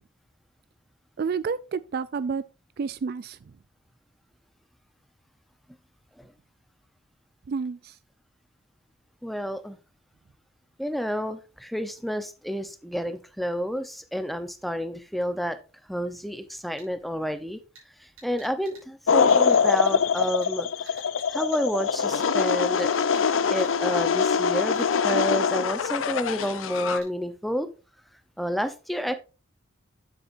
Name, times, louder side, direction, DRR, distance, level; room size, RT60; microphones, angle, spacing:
voice 1, 1.2-2.4 2.8-3.4 7.5-7.9, right 5 dB, 50° right, 0.3 m, -29 dB
voice 2, 9.2-9.8 10.8-15.6 15.9-17.6 18.0-22.9 23.5-27.7 28.4-29.1, equal, ahead, 0.7 m, -30 dB
sound 1, 16.8-16.9 17.7-17.8 18.2-18.8 19.3-19.9 20.2-20.5 20.9-21.2 21.5-21.6 22.2-23.3 23.6-23.7 24.2-24.3 24.7-25.0 26.4-26.5 26.7-27.1, right 4 dB, 85° right, 5.3 m, -49 dB
sound 2, 19.1-27.0, left 6 dB, 70° left, 0.5 m, -23 dB
9.2 x 7.7 x 2.6 m
head